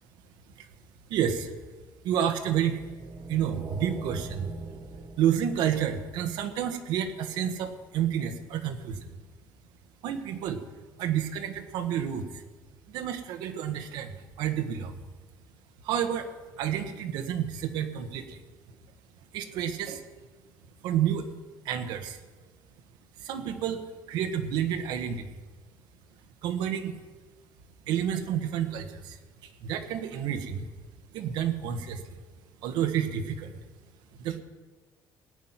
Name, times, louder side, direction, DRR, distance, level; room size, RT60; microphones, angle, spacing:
voice 1, 1.1-1.5 2.0-2.8 3.3-4.5 5.2-9.1 10.0-10.6 11.0-12.4 12.9-15.0 15.8-16.3 16.6-18.4 19.3-20.0 20.8-21.2 21.6-22.2 23.2-25.4 26.4-26.9 27.9-30.7 31.1-32.2 32.6-33.6 34.2-34.4, right 9 dB, 75° right, 7 dB, 1.4 m, -30 dB
sound 1, 2.4-6.7, right 4 dB, 35° right, 1.7 m, -42 dB
17.5 x 5.9 x 9.5 m, 1.3 s
cardioid pair, 180°, 8 cm